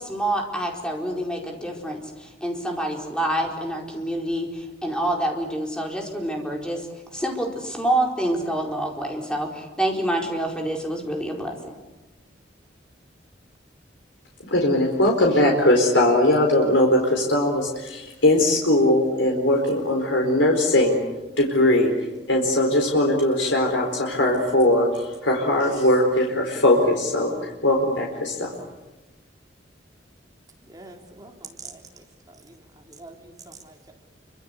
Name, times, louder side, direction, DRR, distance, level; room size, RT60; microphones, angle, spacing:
voice 1, 0.0-6.9 7.1-11.8, right 1 dB, 5° left, 1 dB, 4.7 m, -27 dB
voice 2, 14.5-21.0 21.4-21.9 22.3-28.5, left 1 dB, 85° left, 1 dB, 4.4 m, -20 dB
voice 3, 30.7-31.8 32.4-32.6 32.9-33.9, right 3 dB, 20° right, 1 dB, 3.8 m, -44 dB
28.5 x 25.5 x 8.2 m, 1.1 s
head